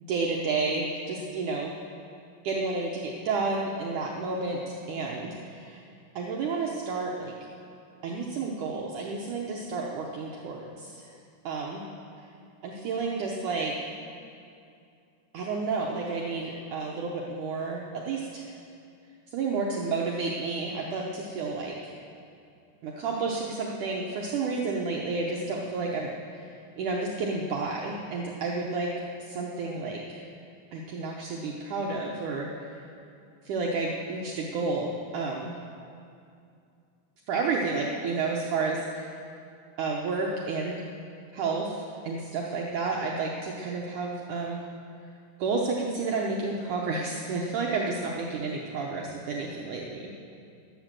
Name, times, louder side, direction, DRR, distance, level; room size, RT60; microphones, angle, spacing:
voice 1, 0.1-1.7 2.4-5.8 6.2-7.3 8.0-11.1 11.5-11.9 12.6-13.8 15.3-18.5 19.3-21.9 22.8-26.5 26.8-28.9 29.2-30.2 30.7-32.8 33.4-35.6 37.3-39.1 39.8-40.8 41.3-44.6 45.4-50.2, right 3 dB, 75° right, -2 dB, 1.8 m, -31 dB
12.5 x 11.0 x 7.6 m, 2.4 s
omnidirectional pair, 4.8 m